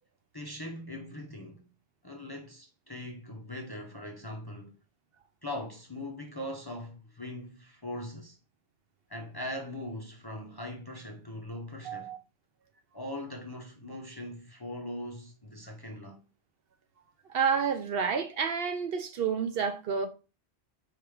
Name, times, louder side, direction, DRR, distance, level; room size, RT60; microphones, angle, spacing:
voice 1, 0.3-1.7 2.0-4.7 5.4-8.4 9.1-12.2 12.9-16.3, left 1 dB, 25° left, 0.6 m, -40 dB
voice 2, 11.8-12.2 17.3-20.1, right 6 dB, 65° right, 0.8 m, -29 dB
4.8 x 3.2 x 3.5 m
omnidirectional pair, 1.2 m